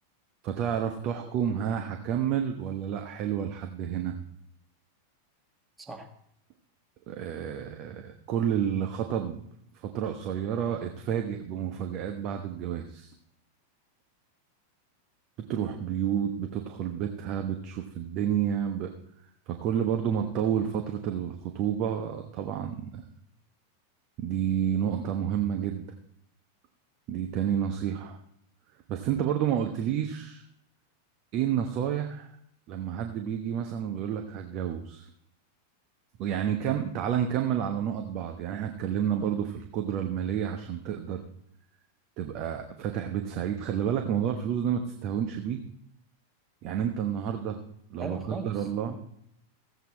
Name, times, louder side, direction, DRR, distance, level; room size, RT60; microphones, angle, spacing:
voice 1, 0.4-4.1 7.1-9.4 9.8-13.1 15.5-18.9 19.5-23.0 24.2-25.8 27.1-28.2 28.9-30.4 31.3-32.3 32.7-35.1 36.2-41.2 42.2-45.6 46.6-47.6 47.9-48.9, right 9 dB, 40° right, 4 dB, 1.0 m, -30 dB
voice 2, 5.8-6.1 48.0-49.0, right 3 dB, 10° right, 3 dB, 1.6 m, -39 dB
15.5 x 8.1 x 4.3 m, 0.71 s
figure-of-eight pair, 90°, 0 cm